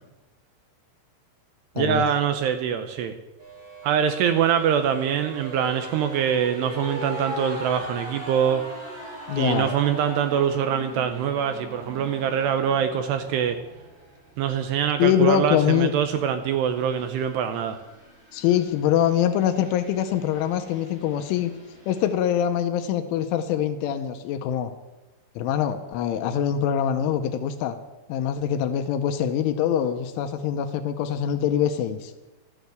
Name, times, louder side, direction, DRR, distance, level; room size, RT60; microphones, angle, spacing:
voice 1, 1.8-3.1 3.8-8.6 9.4-13.6 14.4-17.8, right 8 dB, 85° right, 7 dB, 2.5 m, -24 dB
sound 1, 3.4-22.1, right 1 dB, 30° right, 5.1 m, -40 dB
voice 2, 9.3-9.7 15.0-15.9 18.3-21.5 21.9-24.7 25.4-27.8 28.1-32.1, left 9 dB, 85° left, 7 dB, 3.2 m, -24 dB
13.0 x 10.0 x 8.0 m, 1.1 s
omnidirectional pair, 5.6 m